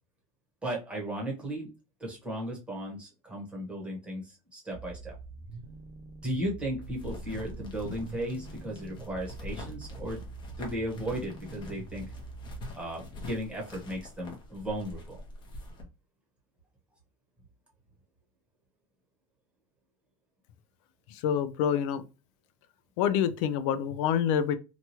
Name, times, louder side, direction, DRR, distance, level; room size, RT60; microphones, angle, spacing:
voice 1, 0.6-1.7 2.0-5.1 6.2-10.2 10.6-12.1 12.7-15.2, right 1 dB, 5° right, 1.0 m, -35 dB
sound 1, 4.7-12.7, right 3 dB, 55° right, 0.6 m, -45 dB
sound 2, 6.8-15.8, left 2 dB, 25° left, 0.8 m, -44 dB
voice 2, 21.1-22.0 23.0-24.6, left 9 dB, 60° left, 0.4 m, -27 dB
2.9 x 2.3 x 2.8 m
supercardioid pair, 155°, 18 cm